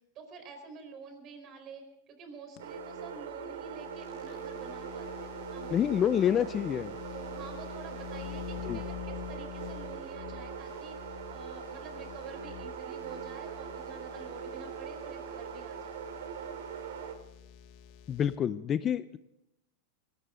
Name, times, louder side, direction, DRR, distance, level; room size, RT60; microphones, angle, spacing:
voice 1, 0.1-5.9 7.1-16.0, right 5 dB, 35° right, 7 dB, 4.3 m, -49 dB
sound 1, 2.6-18.4, left 10 dB, 55° left, 1.3 m, -47 dB
sound 2, 2.6-17.1, right 7 dB, 85° right, 2.4 m, -41 dB
voice 2, 5.7-7.0 8.6-8.8 18.1-19.2, left 9 dB, 25° left, 14 dB, 0.5 m, -28 dB
19.0 x 17.5 x 3.8 m, 0.82 s
supercardioid pair, 145°, 0 cm